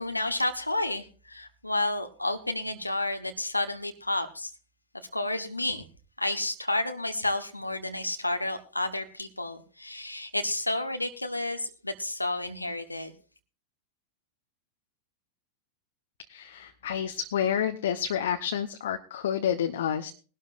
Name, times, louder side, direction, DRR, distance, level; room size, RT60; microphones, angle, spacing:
voice 1, 0.0-4.5 5.1-5.8 6.2-13.1, left 2 dB, 85° left, 6 dB, 1.2 m, -31 dB
voice 2, 16.3-20.1, left 9 dB, 60° left, 5 dB, 1.0 m, -29 dB
21.0 x 12.0 x 2.5 m, 0.37 s
figure-of-eight pair, 90°, 0 cm